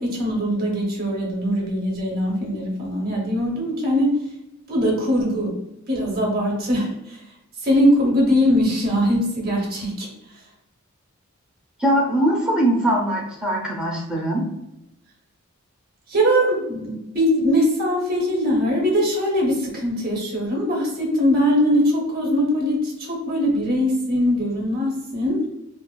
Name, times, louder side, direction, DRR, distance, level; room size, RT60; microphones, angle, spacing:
voice 1, 0.0-4.2 4.7-5.6 5.9-7.2 7.6-10.1 16.1-25.5, equal, 45° right, -1 dB, 0.7 m, -21 dB
voice 2, 11.8-14.4, right 1 dB, 5° right, -4 dB, 0.6 m, -21 dB
2.4 x 2.3 x 2.2 m, 0.89 s
head